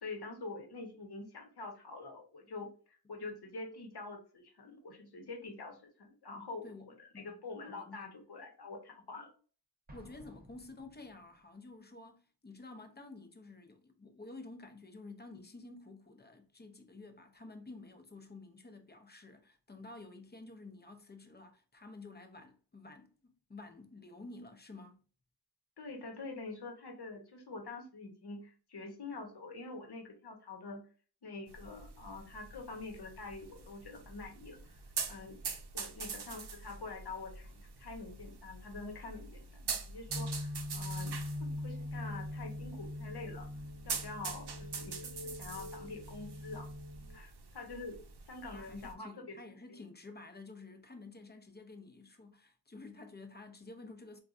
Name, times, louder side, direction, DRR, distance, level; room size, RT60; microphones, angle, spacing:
voice 1, 0.0-9.3 25.8-30.8 31.2-35.4 35.7-43.5 43.8-46.7 47.1-49.4, left 3 dB, 65° left, 1.0 m, -46 dB
voice 2, 7.6-8.1 9.9-25.0 48.5-54.2, left 3 dB, 25° left, 0.6 m, -51 dB
Explosion, 9.9-11.5, right 1 dB, 20° right, 0.7 m, -57 dB
sound 1, 31.5-48.9, right 5 dB, 70° right, 0.6 m, -45 dB
sound 2, 40.1-47.2, left 1 dB, 45° left, 1.3 m, -42 dB
3.8 x 2.3 x 2.4 m
wide cardioid pair, 60°, 42 cm